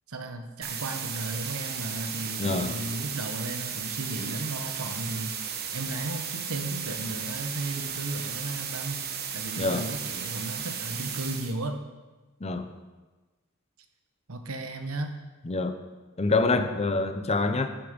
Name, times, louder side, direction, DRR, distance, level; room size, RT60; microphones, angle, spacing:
voice 1, 0.1-5.3 5.7-9.1 9.3-11.8 14.3-15.1, right 2 dB, 80° right, 6 dB, 1.1 m, -35 dB
sound 1, 0.6-11.5, right 7 dB, 45° right, 1.0 m, -35 dB
voice 2, 2.4-2.8 9.6-9.9 12.4-12.7 15.4-15.8 16.2-17.7, left 3 dB, 30° left, 8 dB, 0.7 m, -26 dB
12.5 x 7.1 x 5.2 m, 1.2 s
head